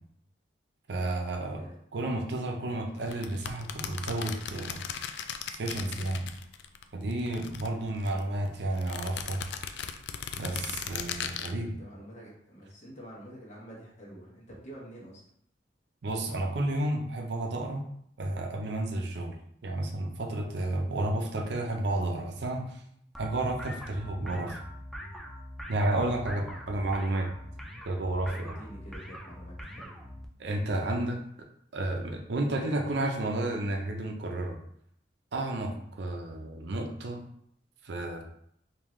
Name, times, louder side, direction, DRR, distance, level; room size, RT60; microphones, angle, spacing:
voice 1, 0.9-1.6 1.9-4.8 5.5-6.2 6.9-9.4 10.4-11.8 16.0-17.8 18.2-19.3 19.6-22.8 23.2-24.6 25.7-27.3 27.9-28.6 30.4-31.2 31.7-34.6 35.3-37.2 37.8-38.2, right 1 dB, 70° right, 3 dB, 0.5 m, -31 dB
voice 2, 1.4-1.8 2.6-2.7 11.6-15.2 26.3-26.6 28.2-30.2 35.6-35.9, right 1 dB, 40° left, -4 dB, 1.2 m, -48 dB
sound 1, 3.0-6.8 7.1-8.2 8.8-11.5, left 8 dB, 70° left, 0.3 m, -38 dB
sound 2, 23.1-30.3, equal, ahead, 0.4 m, -43 dB
3.6 x 2.7 x 3.1 m, 0.70 s
head